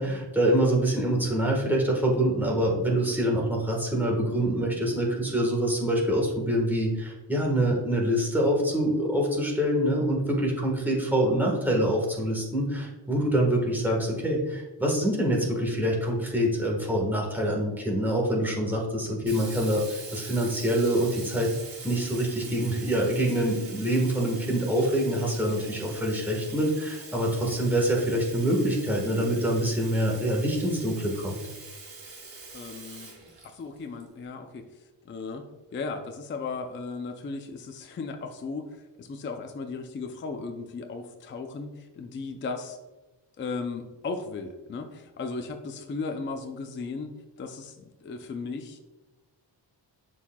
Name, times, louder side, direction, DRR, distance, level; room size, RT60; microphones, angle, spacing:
voice 1, 0.0-21.5 21.8-31.4, right 1 dB, 5° right, -1 dB, 1.3 m, -25 dB
Sink (filling or washing), 19.3-34.0, right 4 dB, 85° right, 2.1 m, -44 dB
voice 2, 32.5-33.1 33.4-35.5 35.7-42.8 43.4-47.1 47.4-48.8, left 4 dB, 30° left, 5 dB, 0.4 m, -36 dB
11.0 x 4.6 x 2.2 m, 1.1 s
wide cardioid pair, 155°, 44 cm